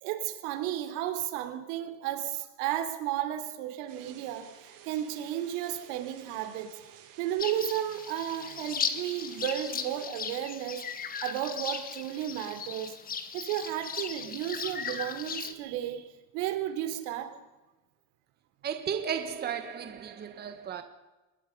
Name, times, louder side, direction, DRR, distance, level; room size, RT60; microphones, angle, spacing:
voice 1, 0.0-4.5 4.9-6.9 7.2-10.9 11.2-13.0 13.3-16.1 16.3-17.4, right 12 dB, 85° right, 3.6 m, -33 dB
sound 1, 3.9-10.1, right 9 dB, 65° right, 6.8 m, -53 dB
sound 2, 7.4-15.5, left 6 dB, 25° left, 1.5 m, -37 dB
voice 2, 18.6-20.8, right 8 dB, 25° right, 1.5 m, -34 dB
25.0 x 20.5 x 5.4 m
cardioid pair, 165°, 37 cm